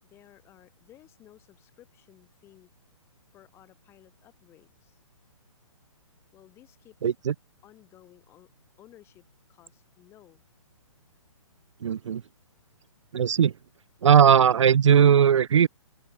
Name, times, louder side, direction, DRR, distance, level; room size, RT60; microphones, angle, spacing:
voice 1, 0.0-2.7 3.3-5.0 6.3-7.1 7.6-8.5 8.8-10.4, left 13 dB, 15° left, 5.3 m, -56 dB
voice 2, 7.0-7.3 11.8-12.2 13.1-13.5 14.0-15.7, right 8 dB, 60° right, 0.9 m, -18 dB
hypercardioid pair, 165°, 18 cm